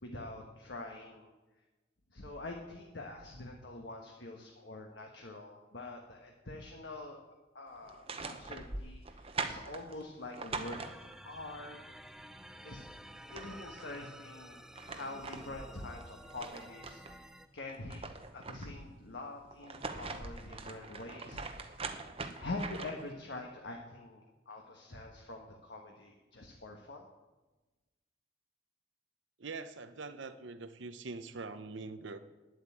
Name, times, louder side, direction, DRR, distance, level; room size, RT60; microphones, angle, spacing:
voice 1, 0.0-1.3 2.1-7.2 7.5-11.0 11.2-12.1 12.6-12.8 13.3-17.3 17.5-18.0 18.3-21.8 22.4-27.1, left 2 dB, 65° left, 1 dB, 1.4 m, -45 dB
sound 1, 7.8-11.4 12.8-12.9 13.1-14.0 14.5-17.2 17.6-18.9 19.5-23.1, right 4 dB, 30° right, 0.9 m, -43 dB
sound 2, 10.5-17.5, equal, 5° right, 0.4 m, -52 dB
voice 2, 29.4-32.2, right 3 dB, 75° right, 11 dB, 0.8 m, -43 dB
10.0 x 7.9 x 8.6 m, 1.2 s
head